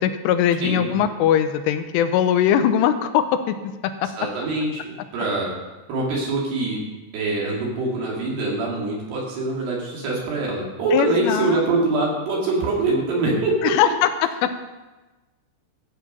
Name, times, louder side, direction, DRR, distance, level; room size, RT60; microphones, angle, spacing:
voice 1, 0.0-3.6 10.9-11.6 13.6-14.1 14.4-14.6, left 9 dB, 90° left, 9 dB, 3.2 m, -20 dB
voice 2, 4.2-5.5 5.9-6.8 7.1-13.7, right 2 dB, 60° right, -3 dB, 4.2 m, -24 dB
14.5 x 8.4 x 5.4 m, 1.1 s
omnidirectional pair, 5.6 m